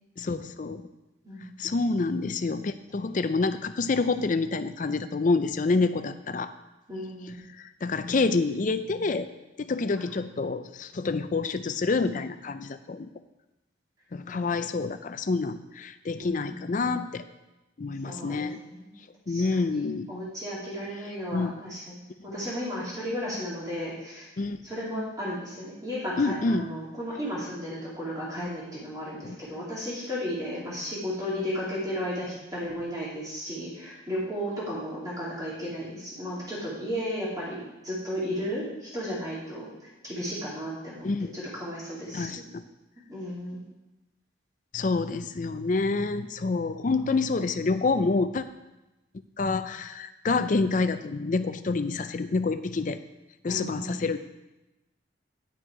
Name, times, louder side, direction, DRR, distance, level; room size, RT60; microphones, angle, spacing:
voice 1, 0.2-0.9 1.6-6.5 7.6-9.3 9.6-13.1 14.1-17.2 17.8-18.6 19.3-20.1 21.3-21.5 24.4-24.6 26.2-26.7 29.2-29.4 41.0-41.3 42.1-42.6 44.7-48.4 49.4-53.0 53.4-54.2, left 3 dB, 40° left, 11 dB, 0.4 m, -27 dB
voice 2, 1.2-1.7 6.9-7.4 14.3-14.4 16.2-16.6 18.0-18.9 19.3-19.8 20.1-24.3 24.6-42.4 43.1-43.7 46.9-47.2 53.5-54.0, equal, 20° right, -7 dB, 2.8 m, -34 dB
9.4 x 6.3 x 4.7 m, 1.0 s
head